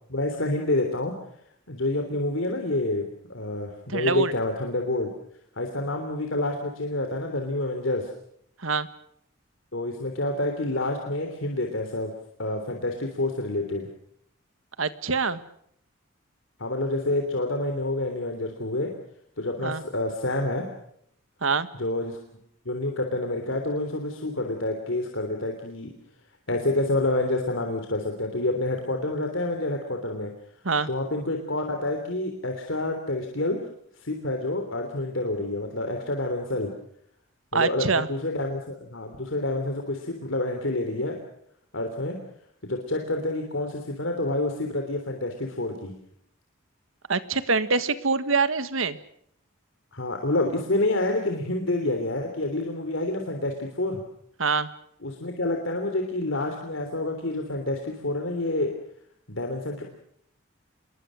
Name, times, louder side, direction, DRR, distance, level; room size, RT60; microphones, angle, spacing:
voice 1, 0.1-1.1 1.7-5.1 5.6-8.1 9.7-12.1 12.4-13.9 16.6-18.9 19.4-20.7 21.8-22.2 22.6-25.9 26.5-30.3 30.9-33.6 34.0-36.7 37.5-41.2 41.7-42.2 42.6-45.9 49.9-54.0 55.0-58.8 59.3-59.8, left 2 dB, 70° left, 4 dB, 3.3 m, -28 dB
voice 2, 3.9-4.3 8.6-8.9 14.8-15.4 19.6-19.8 21.4-21.7 30.6-30.9 37.5-38.1 47.1-49.0 54.4-54.7, right 4 dB, 75° right, 13 dB, 1.7 m, -25 dB
27.5 x 21.5 x 6.4 m, 0.69 s
head